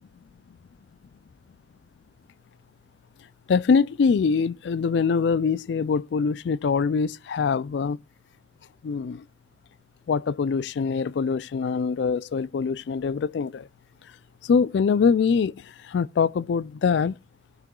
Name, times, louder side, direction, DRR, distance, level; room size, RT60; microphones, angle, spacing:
voice 1, 3.5-8.0 8.8-9.2 10.1-13.7 14.5-15.6 15.9-17.1, left 5 dB, 70° left, 0.3 m, -23 dB
16.5 x 6.0 x 2.3 m
head